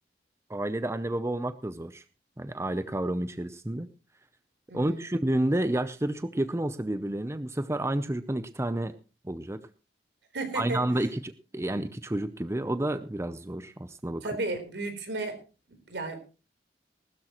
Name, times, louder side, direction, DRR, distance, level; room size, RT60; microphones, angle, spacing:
voice 1, 0.5-2.0 2.4-3.9 4.7-8.9 9.2-9.6 10.5-14.2, right 1 dB, 15° right, 12 dB, 0.6 m, -30 dB
voice 2, 4.7-5.0 10.3-10.8 14.2-15.4 15.7-16.2, right 2 dB, 75° right, 6 dB, 3.9 m, -34 dB
19.5 x 13.0 x 3.0 m, 0.32 s
head